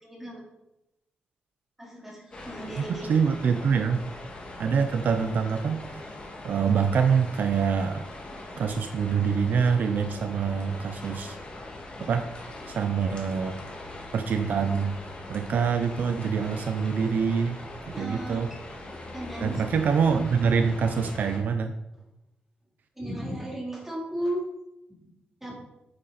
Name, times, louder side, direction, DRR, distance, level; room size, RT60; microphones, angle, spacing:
voice 1, 0.0-0.4 1.8-3.2 17.9-18.5 19.1-19.6 23.0-24.5 25.4-25.6, right 1 dB, 10° right, -4 dB, 3.7 m, -35 dB
sound 1, 2.3-21.4, left 2 dB, 30° left, 2.4 m, -41 dB
voice 2, 2.8-4.0 4.6-6.1 6.4-8.1 8.6-11.4 12.0-12.2 12.7-13.5 14.1-15.0 15.3-17.6 18.0-18.5 19.4-21.7, right 6 dB, 60° right, 7 dB, 0.7 m, -25 dB
9.5 x 8.9 x 4.3 m, 0.91 s
wide cardioid pair, 135°, 3 cm